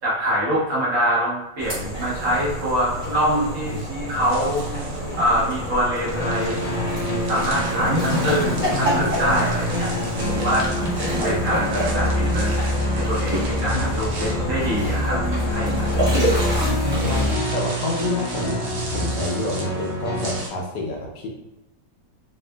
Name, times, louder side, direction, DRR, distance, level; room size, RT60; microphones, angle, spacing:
voice 1, 0.0-3.8 4.1-4.6 5.2-6.6 7.3-9.9 10.3-10.7 11.2-15.2 15.5-16.0 17.1-17.3, equal, 50° right, -8 dB, 1.3 m, -24 dB
sound 1, 1.6-17.3, equal, 20° right, 0.9 m, -27 dB
sound 2, 4.2-20.5, right 2 dB, 75° right, 1.3 m, -37 dB
sound 3, 6.1-20.4, left 1 dB, 50° left, 0.8 m, -26 dB
voice 2, 11.2-11.6 17.0-18.7 18.9-21.3, left 2 dB, 75° left, -1 dB, 1.3 m, -28 dB
3.6 x 2.4 x 2.2 m, 0.93 s
omnidirectional pair, 1.9 m